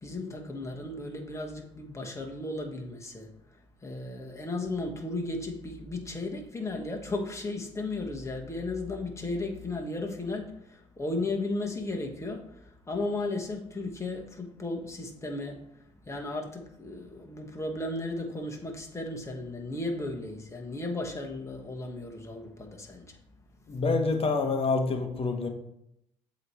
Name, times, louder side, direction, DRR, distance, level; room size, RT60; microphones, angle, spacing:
voice 1, 0.0-23.2, left 2 dB, 20° left, 1.4 m, -35 dB
voice 2, 23.7-25.5, left 3 dB, 40° left, 1.2 m, -27 dB
7.8 x 3.2 x 4.3 m
hypercardioid pair, 60°, 16 cm